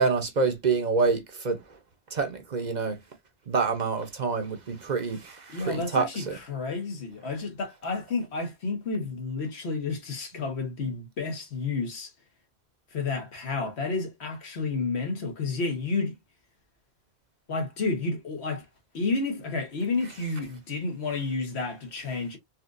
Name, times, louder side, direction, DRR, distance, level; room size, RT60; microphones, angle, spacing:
voice 1, 0.0-1.6 2.1-3.0 3.5-6.4, right 4 dB, 50° right, 0.8 m, -27 dB
voice 2, 5.5-12.1 12.9-16.1 17.5-18.7 18.9-22.4, left 3 dB, 80° left, 1.4 m, -31 dB
4.3 x 2.4 x 2.5 m
omnidirectional pair, 1.1 m